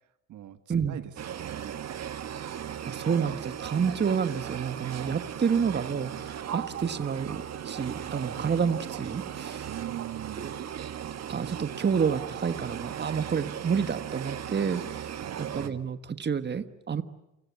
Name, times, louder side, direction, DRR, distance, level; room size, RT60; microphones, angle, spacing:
voice 1, 0.9-1.8 9.6-10.5 15.1-15.4, right 13 dB, 75° right, 10 dB, 1.8 m, -41 dB
sound 1, 1.2-15.7, right 9 dB, 60° right, 1.7 m, -37 dB
voice 2, 2.8-9.7 10.3-10.5 11.2-17.0, right 6 dB, 35° right, 11 dB, 1.5 m, -29 dB
30.0 x 23.5 x 8.3 m, 0.91 s
cardioid pair, 90°, 30 cm